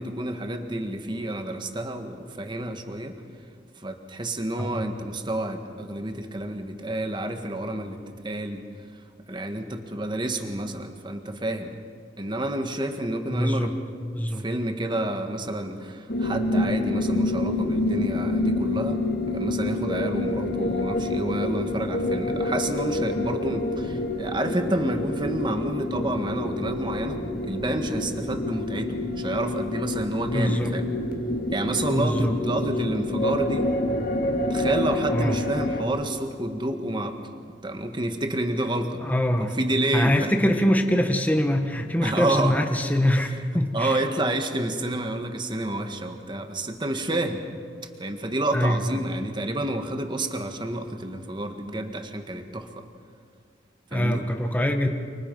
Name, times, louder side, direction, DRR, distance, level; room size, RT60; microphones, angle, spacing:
voice 1, 0.0-3.2 3.8-8.6 9.3-11.7 12.2-13.7 14.4-19.0 19.3-30.9 31.5-33.7 34.5-37.2 37.6-39.0 39.4-40.3 42.0-42.5 43.7-47.4 48.0-52.8 53.9-54.2, right 1 dB, 25° right, 6 dB, 1.7 m, -29 dB
voice 2, 13.3-13.7 14.1-14.4 30.3-30.8 31.9-33.0 35.1-35.4 39.0-39.6 39.9-44.0 48.5-49.0 53.9-54.9, equal, 10° left, 4 dB, 1.6 m, -24 dB
sound 1, 16.1-35.8, left 2 dB, 55° left, 2.4 m, -27 dB
29.5 x 27.5 x 5.6 m, 2.1 s
head